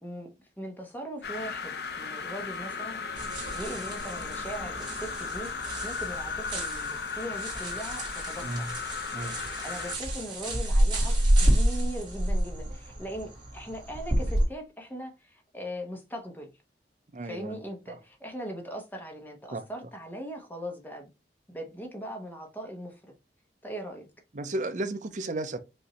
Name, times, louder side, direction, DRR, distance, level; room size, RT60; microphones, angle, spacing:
voice 1, 0.0-3.0 3.5-5.5 5.8-8.7 9.6-16.5 17.2-21.1 21.5-23.0 23.6-24.1, equal, 10° left, 1.0 m, -40 dB
sound 1, 1.2-10.0, left 5 dB, 60° left, 0.6 m, -36 dB
sound 2, 3.1-14.4, right 1 dB, 25° right, 1.9 m, -29 dB
voice 2, 8.4-8.8 9.1-9.4 17.1-17.6 17.9-18.0 19.5-19.6 24.3-25.6, right 2 dB, 45° right, 0.6 m, -34 dB
5.2 x 2.7 x 3.1 m
head